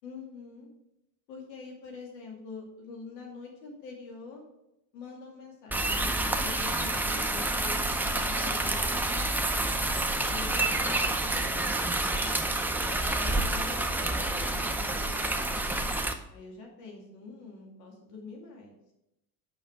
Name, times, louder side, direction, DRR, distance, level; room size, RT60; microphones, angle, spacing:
voice 1, 0.0-0.7 1.3-4.4 4.9-9.5 10.3-11.7 13.0-15.7 16.3-18.7, left 4 dB, 90° left, 0 dB, 2.5 m, -45 dB
sound 1, 5.7-16.1, right 2 dB, 5° right, 0.6 m, -28 dB
6.9 x 5.6 x 4.8 m, 0.85 s
supercardioid pair, 95°, 48 cm